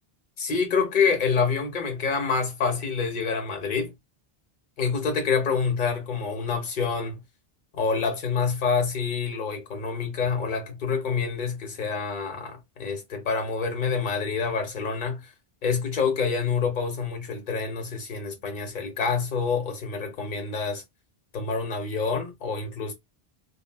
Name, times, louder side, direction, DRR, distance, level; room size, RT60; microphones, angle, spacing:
voice 1, 0.4-3.9 4.8-7.2 7.7-15.2 15.6-20.8 21.3-22.9, left 5 dB, 50° left, 1.0 m, -27 dB
2.3 x 2.3 x 3.3 m
omnidirectional pair, 1.0 m